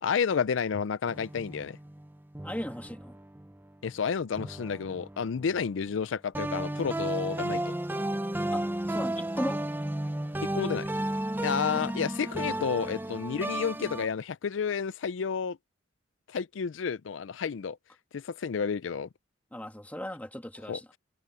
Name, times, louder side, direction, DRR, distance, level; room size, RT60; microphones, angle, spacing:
voice 1, 0.0-1.8 3.8-7.7 10.5-10.9 11.4-15.6 16.3-17.8 18.1-19.1 20.7-20.8, left 6 dB, 85° left, 0.5 m, -31 dB
sound 1, 1.1-3.6 4.3-5.9 6.3-14.1, right 1 dB, 10° right, 0.6 m, -33 dB
voice 2, 2.4-3.2 8.5-9.6 11.7-12.0 19.5-20.9, equal, 10° left, 2.0 m, -37 dB
head